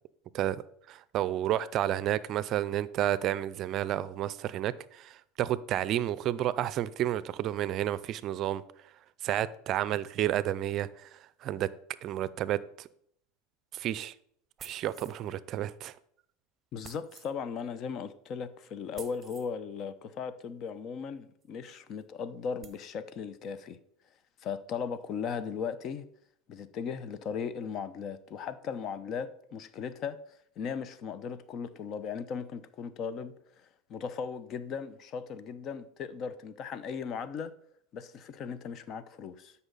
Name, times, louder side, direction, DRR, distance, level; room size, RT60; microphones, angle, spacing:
voice 1, 0.9-8.6 9.2-11.7 12.0-12.9 13.7-14.1 14.6-15.9, right 12 dB, 50° right, 18 dB, 0.4 m, -31 dB
sound 1, 14.6-15.3 16.8-17.3 19.0-19.5 21.4-21.5 22.0-22.1 22.6-22.9, right 7 dB, 30° right, 0.8 m, -50 dB
voice 2, 16.7-23.8 24.4-26.1 26.5-37.5 37.9-39.5, left 6 dB, 50° left, 14 dB, 0.8 m, -37 dB
12.5 x 5.6 x 4.0 m, 0.68 s
hypercardioid pair, 95°, 0 cm